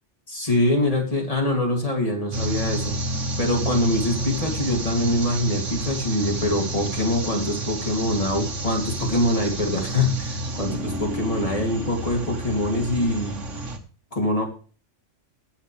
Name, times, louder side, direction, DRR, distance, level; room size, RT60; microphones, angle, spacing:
voice 1, 0.3-2.9 3.4-13.4 14.1-14.4, left 1 dB, 30° left, 1 dB, 2.9 m, -24 dB
sound 1, 2.3-13.8, right 1 dB, 75° right, 1.9 m, -30 dB
20.5 x 7.6 x 3.3 m, 0.38 s
omnidirectional pair, 1.3 m